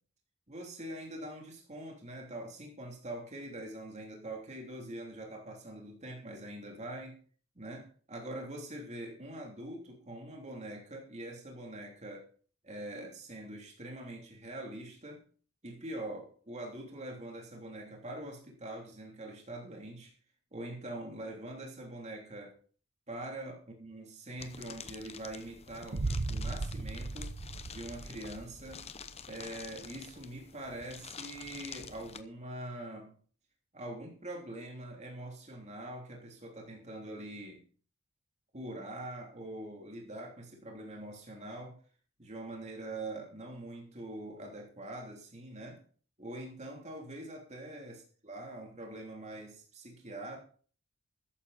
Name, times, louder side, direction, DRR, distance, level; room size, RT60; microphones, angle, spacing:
voice 1, 0.5-7.2 7.5-12.3 12.6-15.2 15.6-20.1 20.5-22.5 23.1-27.3 27.6-28.8 29.3-33.2 33.7-37.6 38.5-41.8 42.2-45.8 46.2-50.4, right 1 dB, 30° right, 0 dB, 3.3 m, -44 dB
sound 1, 24.4-32.2, left 6 dB, 30° left, 0.8 m, -48 dB
sound 2, 25.9-28.9, right 3 dB, 45° right, 0.6 m, -36 dB
13.5 x 10.0 x 4.2 m, 0.43 s
head